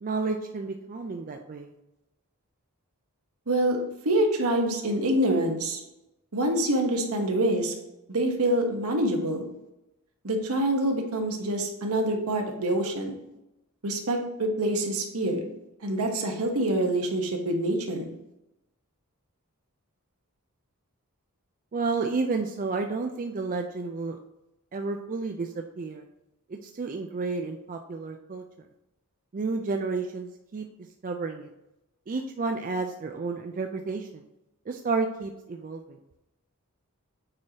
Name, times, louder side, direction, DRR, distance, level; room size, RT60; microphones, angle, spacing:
voice 1, 0.0-1.7 21.7-24.2 24.7-26.0 26.5-28.4 29.3-30.7 31.0-31.5 32.1-34.2 34.7-36.0, right 4 dB, 35° right, 4 dB, 0.4 m, -31 dB
voice 2, 3.5-3.8 4.0-5.8 6.3-7.7 8.1-9.4 10.2-13.1 13.8-15.4 15.8-18.1, right 1 dB, 75° right, 3 dB, 1.1 m, -26 dB
7.5 x 4.6 x 2.8 m, 0.92 s
head